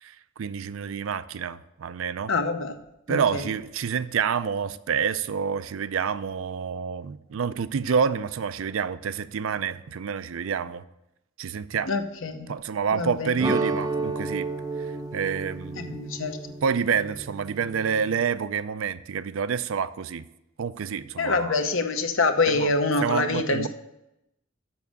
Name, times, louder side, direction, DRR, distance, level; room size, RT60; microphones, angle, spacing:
voice 1, 0.0-2.3 3.1-10.8 11.4-11.9 12.5-14.5 15.1-16.0 16.6-20.3 20.6-21.6 22.5-22.7 23.0-23.7, right 6 dB, 75° right, 0.4 m, -28 dB
voice 2, 2.3-2.8 3.1-3.4 11.9-12.5 12.9-13.3 15.8-16.4 21.2-23.7, left 3 dB, 70° left, 0.9 m, -25 dB
sound 1, 13.4-18.2, right 3 dB, 20° right, 0.6 m, -32 dB
7.0 x 6.2 x 6.8 m
head